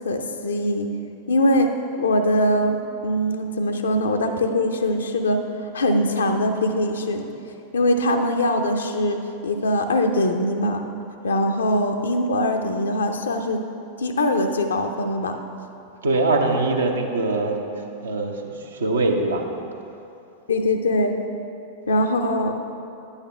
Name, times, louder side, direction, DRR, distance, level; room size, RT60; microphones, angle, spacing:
voice 1, 0.0-0.9 1.3-1.7 2.0-5.4 5.7-7.3 7.7-10.8 11.2-13.6 14.0-15.4 20.5-21.1 21.9-22.6, left 1 dB, 70° left, 5 dB, 0.6 m, -22 dB
voice 2, 16.0-17.6 18.0-18.4 18.7-19.4, right 2 dB, 70° right, 2 dB, 0.8 m, -22 dB
10.0 x 8.2 x 3.4 m, 2.8 s
figure-of-eight pair, 90°, 0 cm